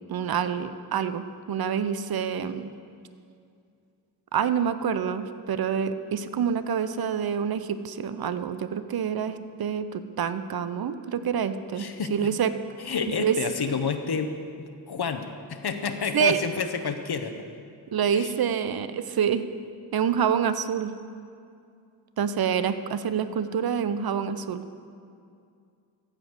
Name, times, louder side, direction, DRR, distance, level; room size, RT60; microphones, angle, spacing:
voice 1, 0.1-2.8 4.3-12.5 13.2-13.4 16.1-16.4 17.9-19.4 19.9-20.9 22.2-24.7, right 7 dB, 60° right, 12 dB, 0.6 m, -27 dB
voice 2, 11.8-12.3 12.8-17.5 18.1-18.3, left 5 dB, 65° left, 7 dB, 0.9 m, -30 dB
14.0 x 5.1 x 7.8 m, 2.4 s
cardioid pair, 60°, 42 cm